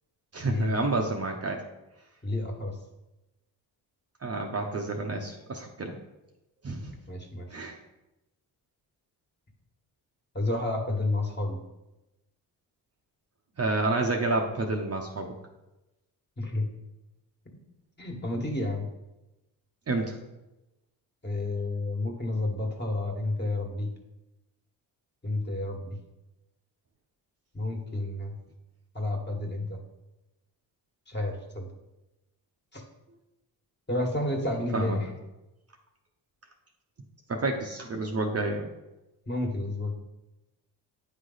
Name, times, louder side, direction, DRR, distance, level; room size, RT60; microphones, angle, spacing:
voice 1, 0.3-1.6 4.2-6.0 6.6-6.9 7.5-7.8 13.6-15.3 19.9-20.2 34.7-35.0 37.3-38.7, right 2 dB, 35° right, 2 dB, 0.8 m, -29 dB
voice 2, 2.2-2.7 7.1-7.5 10.4-11.6 16.4-16.7 18.0-18.9 21.2-23.9 25.2-26.0 27.5-28.3 29.0-29.8 31.1-31.7 32.7-32.8 33.9-35.0 39.3-39.9, left 2 dB, 25° left, 1 dB, 1.6 m, -30 dB
8.9 x 3.2 x 4.0 m, 0.99 s
supercardioid pair, 65°, 44 cm